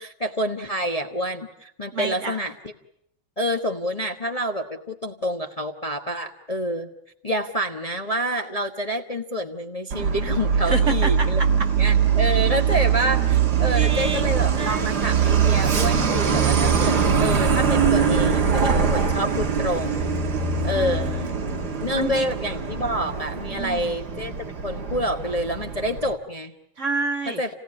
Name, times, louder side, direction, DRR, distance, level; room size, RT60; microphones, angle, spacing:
voice 1, 0.0-2.5 3.4-6.9 7.2-11.4 11.8-20.2 20.6-21.1 21.8-24.3 24.6-26.5 27.3-27.5, equal, 20° left, 4 dB, 1.2 m, -27 dB
voice 2, 1.9-2.4 10.6-11.7 13.7-15.1 20.6-21.6 21.9-22.3 23.5-24.0 26.8-27.4, right 4 dB, 40° right, 4 dB, 1.9 m, -29 dB
Truck, 9.9-26.1, right 7 dB, 55° right, 2.3 m, -22 dB
29.5 x 17.0 x 9.8 m, 0.77 s
omnidirectional pair, 2.1 m